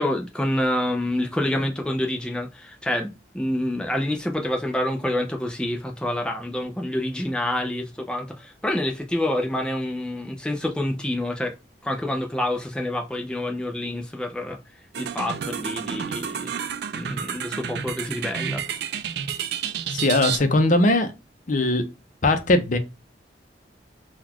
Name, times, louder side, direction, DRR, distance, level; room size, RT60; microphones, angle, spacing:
voice 1, 0.0-11.5 11.8-14.6 15.0-16.5 16.9-18.6, left 1 dB, 5° left, 0.5 m, -27 dB
sound 1, 14.9-20.4, right 8 dB, 65° right, 0.4 m, -30 dB
voice 2, 19.9-21.1 21.5-21.8 22.2-22.8, left 2 dB, 45° left, 0.6 m, -20 dB
3.9 x 2.4 x 2.8 m
head